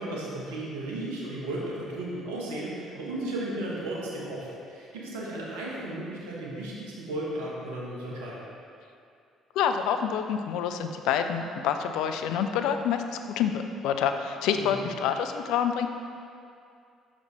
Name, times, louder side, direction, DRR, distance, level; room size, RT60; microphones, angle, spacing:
voice 1, 0.0-8.4 14.5-14.8, right 1 dB, 70° right, -5 dB, 1.2 m, -35 dB
voice 2, 9.6-15.9, left 8 dB, 65° left, 7 dB, 0.3 m, -27 dB
6.3 x 5.0 x 3.3 m, 2.4 s
figure-of-eight pair, 50°, 0 cm